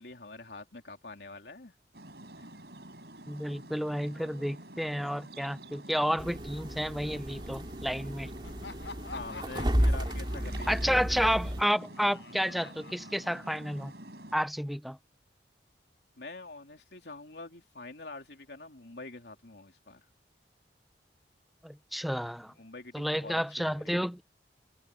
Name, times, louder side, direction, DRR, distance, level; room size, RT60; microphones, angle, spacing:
voice 1, 0.0-1.7 2.4-2.5 9.1-11.0 16.2-20.0 22.6-24.1, left 3 dB, 70° left, 3.2 m, -46 dB
sound 1, 1.9-14.4, right 1 dB, 65° right, 7.5 m, -48 dB
voice 2, 3.3-8.3 10.7-13.9 14.3-15.0 21.6-22.5 22.9-24.2, equal, ahead, 0.6 m, -31 dB
sound 2, 6.2-11.6, equal, 25° right, 2.7 m, -32 dB
Laughter, 8.4-13.9, left 3 dB, 85° left, 6.6 m, -48 dB
head